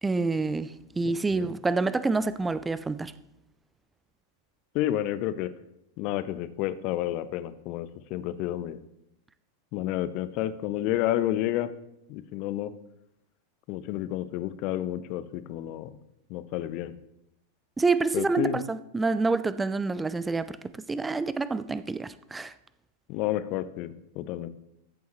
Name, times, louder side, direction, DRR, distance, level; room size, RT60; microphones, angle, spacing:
voice 1, 0.0-3.1 17.8-20.6 20.9-22.5, right 3 dB, 10° right, 0.4 m, -27 dB
voice 2, 4.7-5.5 6.0-8.8 9.7-11.7 12.1-12.7 13.7-15.9 16.3-17.0 18.1-18.6 23.1-24.5, left 13 dB, 40° left, 0.6 m, -30 dB
14.0 x 7.0 x 3.1 m
figure-of-eight pair, 90°, 0 cm